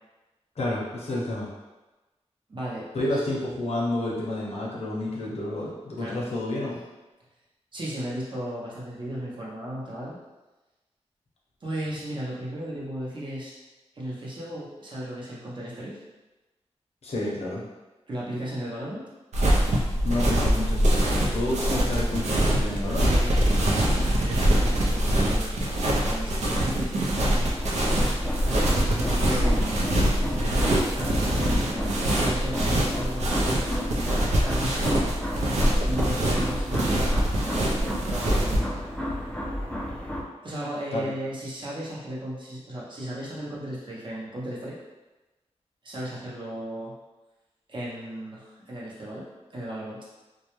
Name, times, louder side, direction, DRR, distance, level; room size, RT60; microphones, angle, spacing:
voice 1, 0.6-1.5 2.9-6.8 17.0-17.6 20.0-20.8 21.2-23.1 29.3-29.6 40.9-41.1, left 1 dB, 65° left, -4 dB, 0.7 m, -30 dB
voice 2, 2.5-3.3 6.0-6.2 7.7-10.2 11.6-13.6 13.9-16.0 18.1-19.0 23.0-27.6 28.4-29.8 30.2-33.6 34.4-34.8 35.3-36.9 37.3-38.8 40.4-44.7 45.8-47.0 47.7-50.0, right 1 dB, 45° right, -6 dB, 0.7 m, -35 dB
sound 1, 19.3-38.6, right 1 dB, 80° right, 0.5 m, -24 dB
sound 2, 27.5-40.2, equal, 10° left, 0.3 m, -33 dB
2.2 x 2.1 x 2.9 m, 1.1 s
wide cardioid pair, 105°, 12 cm